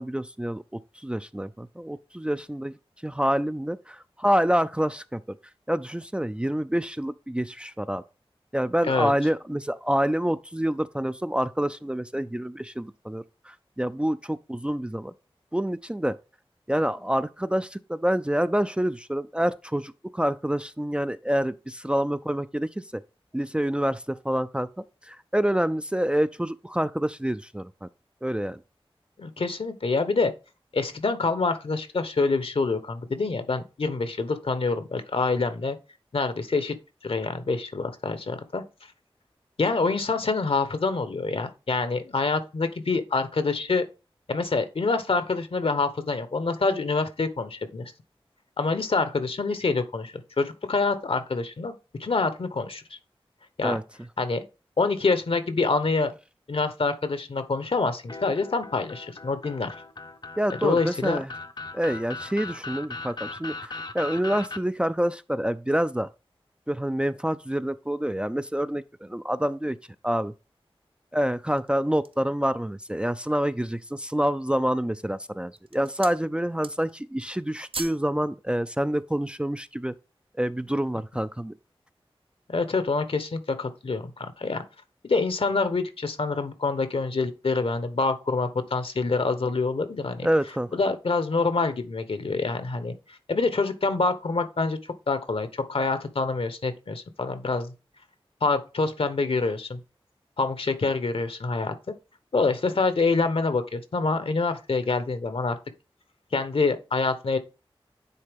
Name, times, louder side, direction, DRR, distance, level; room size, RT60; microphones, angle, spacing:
voice 1, 0.0-2.7 3.0-5.4 5.7-8.0 8.5-15.1 15.5-16.2 16.7-23.0 23.3-27.9 28.2-28.6 53.6-53.8 60.4-61.3 61.7-66.1 66.7-69.8 70.0-70.3 71.1-79.9 80.4-81.5 90.2-90.8, equal, 10° right, 0.4 m, -27 dB
voice 2, 29.2-30.3 30.7-35.8 36.1-36.8 37.0-38.6 39.6-43.8 44.3-47.9 48.6-51.7 52.0-52.8 53.6-53.8 54.2-54.4 54.8-56.1 56.5-59.7 60.6-61.2 82.5-84.6 85.0-90.3 90.7-92.9 93.3-94.8 95.1-97.7 98.4-99.8 100.4-101.7 102.3-105.6 106.3-107.4, left 3 dB, 70° left, 1.0 m, -26 dB
sound 1, 58.1-64.6, left 3 dB, 50° left, 0.7 m, -38 dB
sound 2, 71.3-72.3 72.9-73.0 73.5-74.1 74.8-75.1 75.5-76.2 76.5-77.0 77.3-78.1 78.4-78.6, right 4 dB, 65° right, 0.7 m, -40 dB
9.5 x 3.9 x 3.5 m
wide cardioid pair, 70°, 10 cm